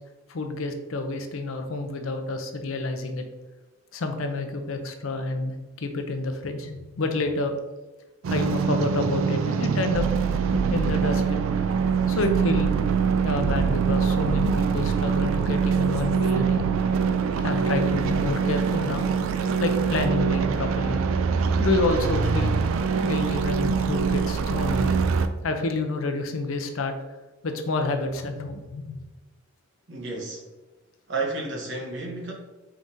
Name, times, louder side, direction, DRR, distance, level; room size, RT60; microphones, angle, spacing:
voice 1, 0.3-3.2 3.9-7.6 8.3-10.1 10.7-11.4 12.1-12.7 13.2-16.6 17.4-19.0 19.6-21.0 21.6-22.5 23.0-25.0 25.4-26.9 27.4-29.0, left 2 dB, 85° left, 6 dB, 0.6 m, -28 dB
sound 1, 8.2-25.3, right 6 dB, 90° right, 0.3 m, -24 dB
voice 2, 29.9-30.4 31.1-32.3, right 3 dB, 65° right, 0 dB, 1.0 m, -31 dB
4.6 x 3.6 x 2.6 m, 1.1 s
head